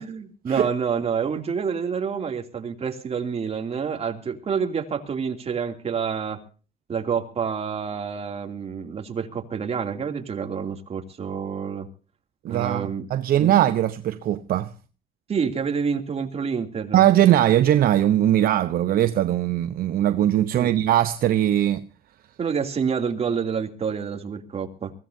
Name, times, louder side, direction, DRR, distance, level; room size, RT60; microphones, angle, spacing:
voice 1, 0.0-6.4 6.9-11.9 12.5-13.1 13.4-13.5 15.3-17.1 20.6-20.7 22.4-24.9, right 6 dB, 35° right, 2.8 m, -28 dB
voice 2, 12.4-14.7 16.9-21.8, right 12 dB, 60° right, 0.9 m, -20 dB
23.0 x 17.0 x 2.7 m
cardioid pair, 110°, 17 cm